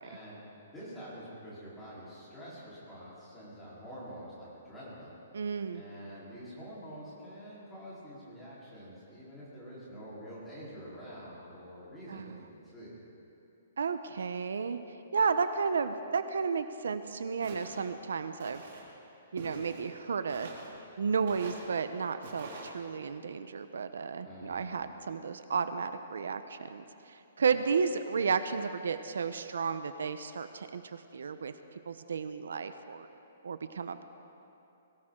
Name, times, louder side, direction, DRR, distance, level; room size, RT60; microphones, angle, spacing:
voice 1, 0.0-5.2 5.7-13.0 24.2-24.8 27.4-27.6, equal, 5° left, -10 dB, 4.1 m, -47 dB
voice 2, 5.3-5.8 12.1-12.4 13.8-14.8 15.1-18.6 19.3-20.5 21.0-31.5 31.9-33.1 33.4-34.0, right 5 dB, 85° right, 10 dB, 0.8 m, -33 dB
Walk footsteps, 17.4-17.9 18.4-18.8 19.4-19.9 20.3-20.7 21.3-21.7 22.2-22.7, right 3 dB, 45° right, 3.2 m, -46 dB
21.5 x 17.5 x 3.8 m, 2.8 s
hypercardioid pair, 175°, 0 cm